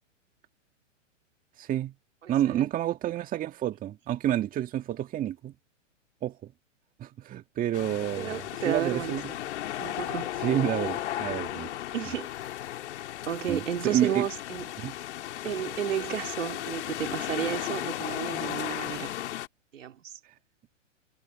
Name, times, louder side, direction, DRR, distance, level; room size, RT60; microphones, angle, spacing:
voice 1, 1.6-1.9 2.3-5.5 6.2-6.5 7.0-9.3 10.4-11.7 13.5-14.2 14.8-14.9, right 12 dB, 20° right, 1.8 m, -29 dB
voice 2, 2.2-2.7 8.2-9.4 9.8-10.3 11.9-12.3 13.3-14.7 15.4-19.1 19.7-20.2, right 9 dB, 75° right, 3.3 m, -32 dB
sound 1, 7.7-19.5, left 13 dB, 60° left, 3.3 m, -35 dB
hypercardioid pair, 125°, 38 cm